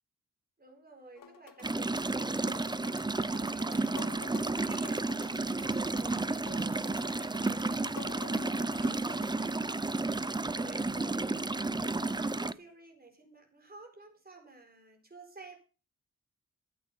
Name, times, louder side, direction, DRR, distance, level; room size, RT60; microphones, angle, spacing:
voice 1, 0.6-9.6 10.0-11.5 11.8-15.6, right 3 dB, 30° right, 3 dB, 4.5 m, -53 dB
sound 1, 1.2-9.3, left 7 dB, 85° left, 1.1 m, -50 dB
sound 2, 1.6-12.5, right 2 dB, 15° right, 0.5 m, -32 dB
13.5 x 8.5 x 5.5 m, 0.35 s
wide cardioid pair, 100°, 32 cm